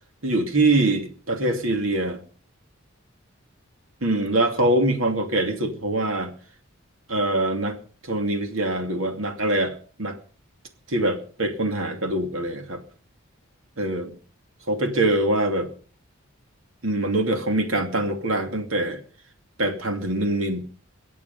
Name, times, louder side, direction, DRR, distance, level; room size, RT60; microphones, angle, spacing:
voice 1, 0.2-2.2 4.0-6.3 7.1-7.8 8.1-10.2 10.9-12.8 13.8-14.1 14.7-15.7 16.8-19.0 19.6-20.6, right 1 dB, 70° right, 5 dB, 2.7 m, -24 dB
23.0 x 8.5 x 5.4 m, 0.41 s
head